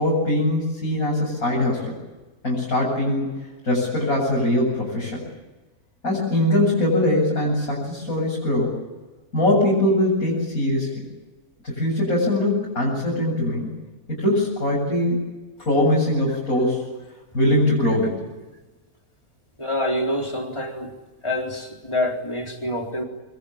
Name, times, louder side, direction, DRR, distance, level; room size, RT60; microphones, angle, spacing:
voice 1, 0.0-1.9 2.4-3.3 3.6-5.2 6.0-8.8 9.3-11.0 11.6-13.7 14.1-15.2 15.6-16.8 17.3-18.3, left 1 dB, 65° left, -5 dB, 8.5 m, -22 dB
voice 2, 19.6-20.9 21.2-23.0, left 1 dB, 20° left, 2 dB, 3.9 m, -26 dB
26.0 x 23.5 x 8.8 m, 1.2 s
omnidirectional pair, 1.6 m